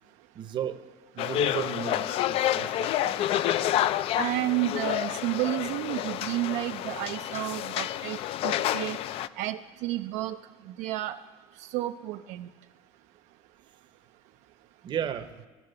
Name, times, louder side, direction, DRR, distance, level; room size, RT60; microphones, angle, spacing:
voice 1, 0.3-0.8 1.1-3.2 14.8-15.3, right 9 dB, 40° right, 11 dB, 0.7 m, -34 dB
sound 1, 1.2-9.3, left 12 dB, 55° left, 0.4 m, -29 dB
voice 2, 4.2-9.0 9.4-10.4 10.8-11.2 11.7-12.5, right 15 dB, 75° right, 8 dB, 0.4 m, -31 dB
16.5 x 5.8 x 6.6 m, 1.2 s
cardioid pair, 140°, 12 cm